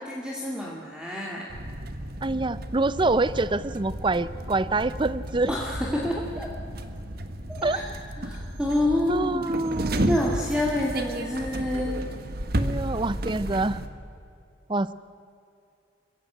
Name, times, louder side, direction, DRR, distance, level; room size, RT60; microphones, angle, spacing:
voice 1, 0.1-1.5 5.5-6.5 7.5-7.9 8.2-9.5 10.1-12.0, left 1 dB, 5° right, -3 dB, 2.5 m, -28 dB
sound 1, 1.5-13.9, right 1 dB, 50° right, 1.5 m, -33 dB
voice 2, 2.2-5.6 7.6-7.8 9.1-10.1 12.5-13.8 14.7-14.9, right 2 dB, 25° right, 16 dB, 0.6 m, -26 dB
29.0 x 15.5 x 9.2 m, 2.6 s
head